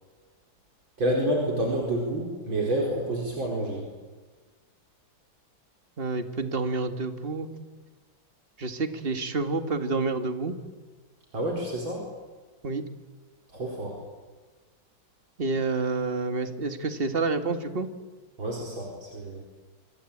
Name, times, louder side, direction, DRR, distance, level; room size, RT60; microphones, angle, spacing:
voice 1, 1.0-3.9 11.3-12.0 13.5-14.0 18.4-19.4, right 1 dB, 75° right, 0 dB, 5.4 m, -28 dB
voice 2, 6.0-7.5 8.6-10.6 12.6-12.8 15.4-17.9, right 3 dB, 30° right, 8 dB, 2.0 m, -28 dB
27.0 x 25.0 x 8.6 m, 1.3 s
omnidirectional pair, 2.1 m